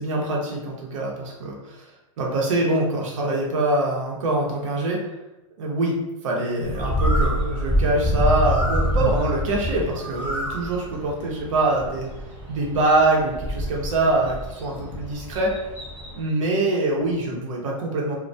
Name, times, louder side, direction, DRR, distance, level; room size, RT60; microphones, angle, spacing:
voice 1, 0.0-1.8 2.2-5.0 5.6-5.9 6.2-12.1 12.5-15.5 16.2-18.2, right 2 dB, 70° right, -2 dB, 0.8 m, -24 dB
Bird, 6.6-16.2, equal, 10° right, 0.9 m, -26 dB
2.2 x 2.2 x 2.6 m, 0.98 s
hypercardioid pair, 130°, 17 cm